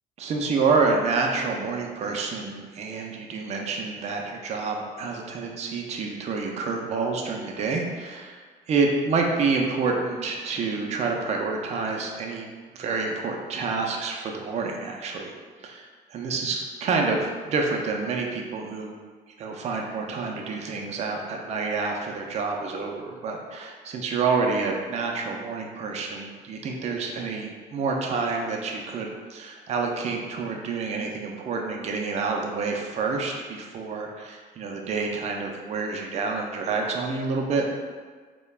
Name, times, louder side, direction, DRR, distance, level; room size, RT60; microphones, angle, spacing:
voice 1, 0.2-8.4 8.7-15.3 15.6-19.0 19.4-37.6, right 4 dB, 40° right, 1 dB, 0.4 m, -28 dB
3.2 x 2.1 x 2.3 m, 1.5 s
cardioid pair, 110°, 17 cm